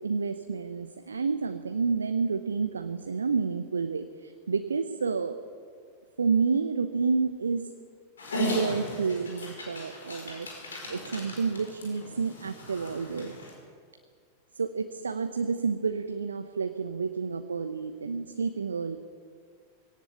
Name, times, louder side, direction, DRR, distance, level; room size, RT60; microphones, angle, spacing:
voice 1, 0.0-5.4 6.2-7.7 8.4-10.5 10.9-13.3 14.5-19.0, right 5 dB, 75° right, 9 dB, 0.8 m, -29 dB
Dog, 8.2-13.5, left 2 dB, 70° left, 5.3 m, -37 dB
20.5 x 17.5 x 8.2 m, 2.1 s
figure-of-eight pair, 90°, 0 cm